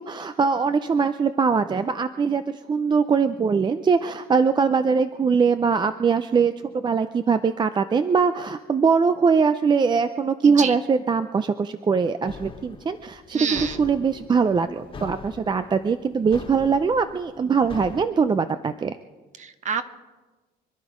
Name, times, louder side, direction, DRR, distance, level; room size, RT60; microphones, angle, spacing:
voice 1, 0.0-2.4 2.7-18.9, right 5 dB, 25° right, 10 dB, 0.5 m, -22 dB
voice 2, 10.4-10.7 13.3-13.8 19.4-19.9, right 6 dB, 45° right, 10 dB, 1.2 m, -28 dB
sound 1, 12.3-18.0, left 5 dB, 30° left, 1.7 m, -42 dB
26.0 x 11.0 x 5.0 m, 1.3 s
cardioid pair, 110°, 17 cm